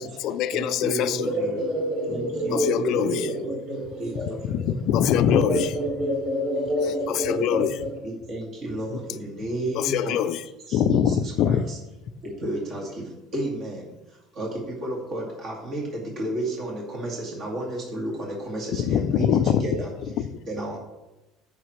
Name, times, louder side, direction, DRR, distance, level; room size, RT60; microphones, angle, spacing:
voice 1, 0.0-1.3 2.5-3.3 4.5-5.7 7.1-7.7 9.7-10.4 10.7-11.6 18.8-19.7, left 9 dB, 50° left, 13 dB, 0.4 m, -23 dB
voice 2, 0.5-1.6 2.1-3.5 4.0-4.6 7.1-7.7 8.0-10.2 10.7-11.8 12.2-19.9 20.2-20.8, right 1 dB, 35° right, -2 dB, 2.2 m, -32 dB
voice 3, 1.1-4.4 5.3-8.0, equal, 60° right, -3 dB, 3.4 m, -28 dB
14.0 x 5.9 x 3.2 m, 1.0 s
cardioid pair, 165°, 0 cm